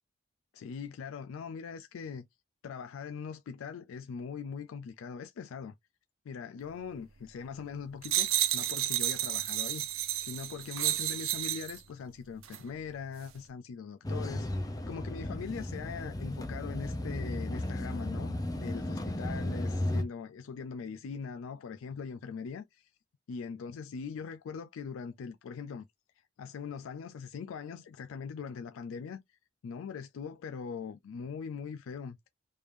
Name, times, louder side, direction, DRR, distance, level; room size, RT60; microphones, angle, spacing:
voice 1, 0.5-2.3 2.6-5.7 6.3-9.9 10.2-22.9 23.3-25.8 26.2-29.2 29.6-32.3, left 6 dB, 75° left, 0.3 m, -41 dB
sound 1, 8.0-11.8 12.4-12.6, right 12 dB, 75° right, 0.6 m, -31 dB
sound 2, 14.0-20.0, left 1 dB, 15° left, 0.5 m, -35 dB
3.4 x 3.3 x 2.5 m
head